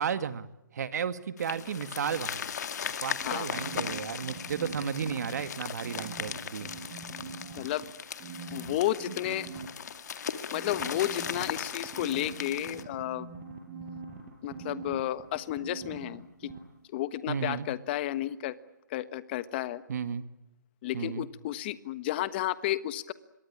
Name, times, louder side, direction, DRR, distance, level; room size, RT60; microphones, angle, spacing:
voice 1, 0.0-2.4 3.0-6.7 17.3-17.7 19.9-20.3 20.9-21.3, right 7 dB, 55° right, 12 dB, 1.9 m, -33 dB
sound 1, 1.4-12.8, left 7 dB, 55° left, 2.2 m, -38 dB
sound 2, 3.2-5.5 5.8-7.8 8.2-9.7 10.5-16.2 16.4-16.6, right 5 dB, 25° right, 7.2 m, -43 dB
voice 2, 7.5-7.9 8.5-9.5 10.5-13.3 14.4-16.5 16.9-18.5 18.9-19.8 20.8-23.1, left 14 dB, 30° left, 15 dB, 1.4 m, -32 dB
26.5 x 23.0 x 8.7 m, 0.89 s
hypercardioid pair, 150°, 11 cm